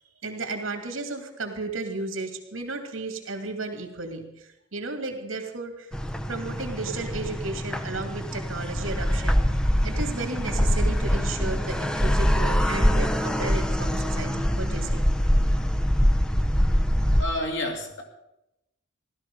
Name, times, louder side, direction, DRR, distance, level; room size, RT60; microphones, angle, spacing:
voice 1, 0.2-5.9 6.3-9.4 9.8-15.0, right 3 dB, 85° right, 4 dB, 2.6 m, -34 dB
sound 1, 5.9-17.2, equal, 5° left, 0.6 m, -24 dB
voice 2, 17.2-18.0, left 1 dB, 60° left, 1 dB, 2.8 m, -29 dB
16.0 x 12.5 x 5.4 m, 0.88 s
head